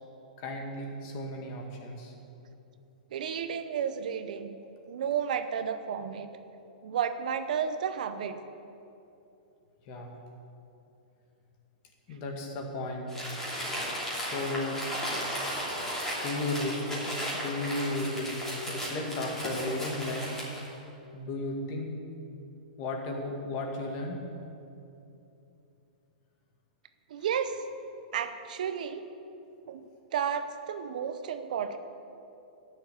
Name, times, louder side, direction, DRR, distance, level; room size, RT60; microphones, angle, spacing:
voice 1, 0.4-2.1 9.9-10.1 12.1-13.1 14.1-14.8 16.2-16.9 17.3-20.2 21.1-21.9 22.8-24.2, left 2 dB, 35° left, 2 dB, 2.0 m, -34 dB
voice 2, 3.1-4.6 4.9-6.3 6.8-8.4 27.1-27.6 28.1-29.0 29.7-29.8 30.1-31.8, right 8 dB, 65° right, 9 dB, 0.8 m, -32 dB
Crumpling crinkling, 13.1-20.7, equal, 10° left, 2.9 m, -35 dB
12.5 x 7.1 x 8.6 m, 2.8 s
hypercardioid pair, 160°, 5 cm